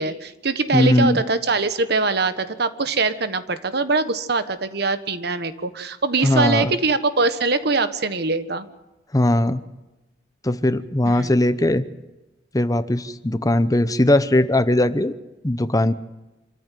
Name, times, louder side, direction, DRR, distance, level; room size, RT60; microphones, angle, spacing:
voice 1, 0.0-8.7 11.2-11.3, right 3 dB, 60° right, 11 dB, 1.4 m, -22 dB
voice 2, 0.7-1.2 6.2-6.7 9.1-9.6 10.4-11.8 12.5-15.1 15.4-15.9, left 1 dB, 20° left, 13 dB, 0.8 m, -19 dB
26.5 x 14.5 x 9.3 m, 1.0 s
head